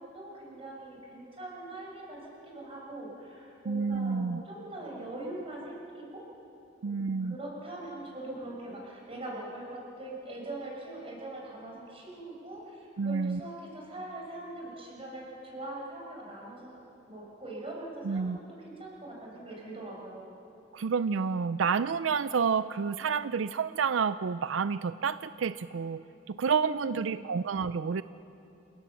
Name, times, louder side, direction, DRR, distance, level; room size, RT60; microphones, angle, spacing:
voice 1, 0.0-6.2 6.8-16.8 17.1-20.3 26.6-27.3, right 2 dB, 30° right, -2 dB, 6.2 m, -42 dB
voice 2, 3.7-4.4 6.8-7.4 13.0-13.4 18.0-18.4 20.7-26.0 26.3-28.0, right 5 dB, 85° right, 14 dB, 0.4 m, -29 dB
29.0 x 17.0 x 7.2 m, 2.8 s
head